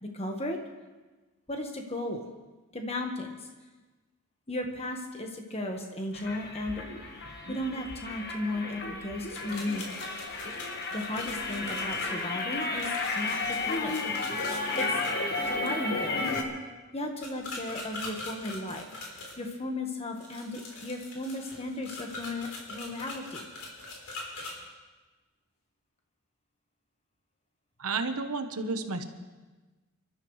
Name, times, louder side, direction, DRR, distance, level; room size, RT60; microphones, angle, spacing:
voice 1, 0.0-0.6 1.5-2.2 2.7-3.4 4.5-6.8 7.5-9.8 10.9-14.0 14.8-15.0 15.5-16.3 16.9-18.8 19.4-23.5, left 1 dB, 25° left, 3 dB, 1.5 m, -35 dB
sound 1, 6.1-16.4, left 3 dB, 45° left, 1.6 m, -33 dB
sound 2, 9.3-15.1 17.2-19.4 20.2-24.5, left 2 dB, 80° left, 4.0 m, -42 dB
voice 2, 27.8-29.0, right 3 dB, 80° right, 7 dB, 1.2 m, -31 dB
26.5 x 13.0 x 3.3 m, 1.2 s
head